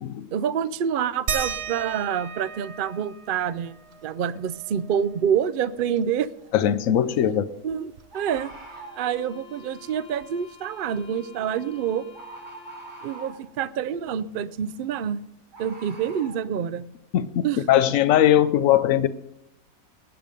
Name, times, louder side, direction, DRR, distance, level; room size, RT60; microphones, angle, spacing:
voice 1, 0.3-6.3 7.3-8.5 9.0-12.1 13.0-15.2 15.6-16.8 17.4-17.6, right 8 dB, 70° right, 16 dB, 0.5 m, -27 dB
sound 1, 1.3-6.4 6.8-6.9 7.2-8.9 10.2-10.3 11.0-11.1, right 6 dB, 50° right, 1.0 m, -37 dB
Bird, 6.4-6.5 8.1-9.1 11.3-11.6 12.1-13.5 15.5-16.4, right 2 dB, 30° right, 2.3 m, -43 dB
voice 2, 6.5-7.4 17.1-19.1, left 11 dB, 65° left, 11 dB, 1.1 m, -20 dB
sound 2, 8.5-13.5, left 4 dB, 45° left, 3.5 m, -50 dB
19.0 x 8.9 x 5.2 m, 0.89 s
omnidirectional pair, 1.6 m